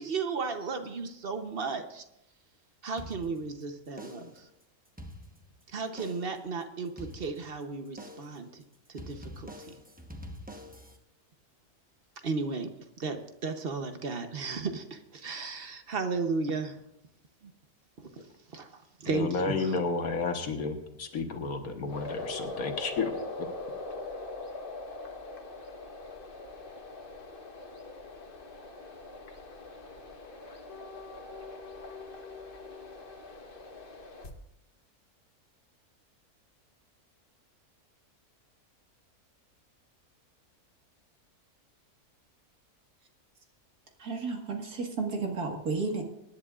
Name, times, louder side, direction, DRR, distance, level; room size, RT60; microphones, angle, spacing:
voice 1, 0.0-2.0 2.8-4.5 5.7-8.6 8.9-9.8 12.2-16.8 18.0-18.1 18.5-19.7, right 4 dB, 45° right, 7 dB, 1.0 m, -34 dB
sound 1, 3.0-3.6 4.0-4.5 4.9-5.6 6.0-6.5 7.0-7.6 8.0-8.5 9.0-11.0, equal, 5° right, 0.8 m, -46 dB
voice 2, 19.1-23.1, left 4 dB, 70° left, 5 dB, 1.7 m, -31 dB
sound 2, 21.9-34.3, left 3 dB, 40° left, 1.2 m, -42 dB
voice 3, 44.0-46.0, right 4 dB, 85° right, 2 dB, 2.2 m, -32 dB
24.5 x 10.5 x 2.4 m, 0.83 s
omnidirectional pair, 1.6 m